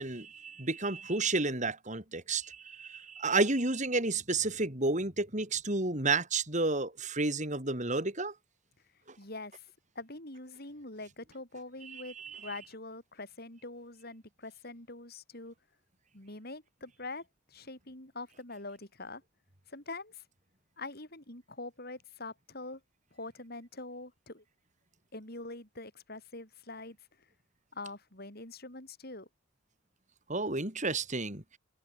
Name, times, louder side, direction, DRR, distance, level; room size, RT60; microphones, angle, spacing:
voice 1, 0.0-8.3 11.9-12.5 30.3-31.6, right 3 dB, 35° right, 4.0 m, -31 dB
voice 2, 9.2-9.7 9.9-15.5 16.1-19.2 19.7-20.2 20.8-22.8 23.1-24.4 25.1-27.0 27.7-29.3, left 2 dB, 50° left, 6.5 m, -44 dB
open air
head